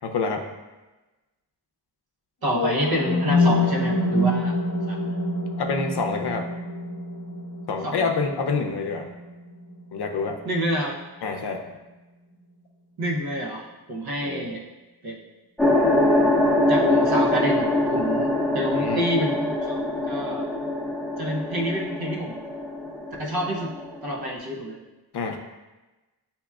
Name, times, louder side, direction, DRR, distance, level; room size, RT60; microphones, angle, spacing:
voice 1, 0.0-0.5 5.6-6.5 7.7-9.1 9.9-10.4 11.2-11.8 14.2-14.5 18.7-19.1 25.1-25.4, left 4 dB, 70° left, 4 dB, 0.6 m, -27 dB
voice 2, 2.4-4.5 4.9-5.0 7.8-8.1 10.4-11.0 13.0-14.6 15.0-15.2 16.7-20.5 21.2-22.4 23.2-23.7 24.0-24.8, equal, 65° right, -1 dB, 0.9 m, -28 dB
sound 1, 2.5-10.5, left 2 dB, 40° left, 0.8 m, -26 dB
sound 2, 15.6-24.3, left 1 dB, ahead, 0.7 m, -24 dB
7.2 x 2.9 x 2.3 m, 1.1 s
wide cardioid pair, 80°, 41 cm